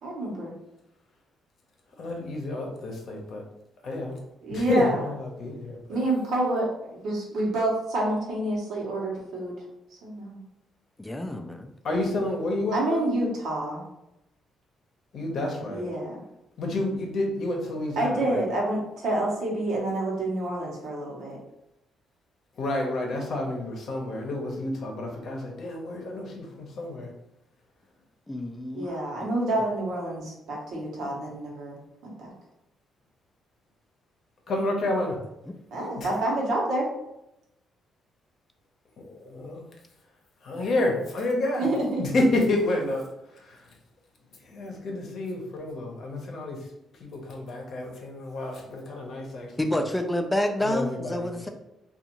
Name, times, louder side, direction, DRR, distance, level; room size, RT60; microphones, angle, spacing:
voice 1, 0.0-0.5 4.4-5.1 5.9-9.5 10.0-10.4 12.7-13.8 15.7-16.2 18.0-21.4 28.7-31.8 32.0-32.3 35.7-36.9 41.6-42.0, right 1 dB, 75° right, -3 dB, 1.0 m, -28 dB
voice 2, 2.0-3.4 3.8-4.2 4.5-5.8 11.8-13.0 15.1-15.8 16.6-18.5 22.6-27.1 28.8-28.9 34.5-35.2 36.0-36.1 39.1-39.6 40.4-41.7 42.0-43.1 43.3-43.6 44.5-46.6 47.0-49.5 50.6-51.3, left 2 dB, 60° left, 1 dB, 0.7 m, -29 dB
voice 3, 11.0-11.7 28.3-28.9 35.5-35.6 49.6-51.5, left 1 dB, 10° left, 4 dB, 0.3 m, -28 dB
2.5 x 2.4 x 2.9 m, 0.85 s
cardioid pair, 90°, 0 cm